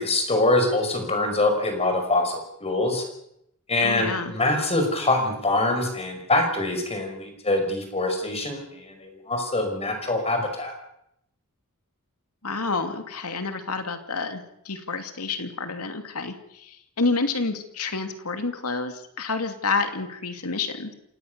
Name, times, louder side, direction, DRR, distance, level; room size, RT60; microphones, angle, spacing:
voice 1, 0.0-3.0 3.7-8.6 9.0-10.7, left 2 dB, 30° left, 5 dB, 5.7 m, -24 dB
voice 2, 3.8-4.4 12.4-20.9, left 4 dB, 85° left, 7 dB, 2.7 m, -29 dB
27.5 x 17.5 x 6.9 m, 0.76 s
head